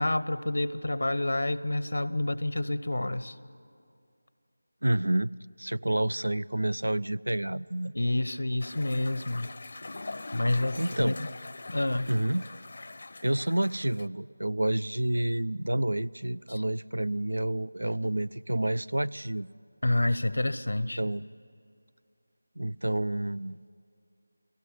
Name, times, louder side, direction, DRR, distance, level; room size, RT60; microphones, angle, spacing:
voice 1, 0.0-3.3 7.9-9.5 10.3-11.1 11.7-12.1 16.5-16.6 19.8-21.0, left 1 dB, 80° left, 15 dB, 1.1 m, -28 dB
voice 2, 4.8-5.3 5.6-7.9 10.8-11.2 12.1-12.4 13.2-19.5 21.0-21.3 22.6-23.6, right 1 dB, 85° right, 22 dB, 0.5 m, -29 dB
sound 1, 8.6-14.1, left 2 dB, 55° left, 0.8 m, -42 dB
30.0 x 18.0 x 9.7 m, 2.5 s
figure-of-eight pair, 170°, 0 cm